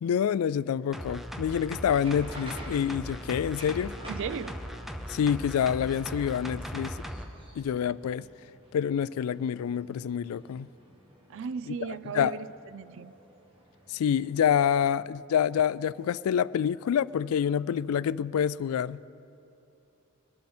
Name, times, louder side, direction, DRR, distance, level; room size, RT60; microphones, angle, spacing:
voice 1, 0.0-3.9 5.1-7.0 7.6-8.3 8.7-10.7 12.1-12.4 13.9-19.0, left 8 dB, 80° left, 0.3 m, -27 dB
sound 1, 0.9-7.3 7.6-7.7, equal, ahead, 0.7 m, -39 dB
sound 2, 1.7-14.5, right 1 dB, 25° right, 1.6 m, -51 dB
voice 2, 4.1-4.6 11.3-12.5 12.7-13.1, right 6 dB, 60° right, 0.4 m, -36 dB
21.0 x 11.5 x 4.4 m
head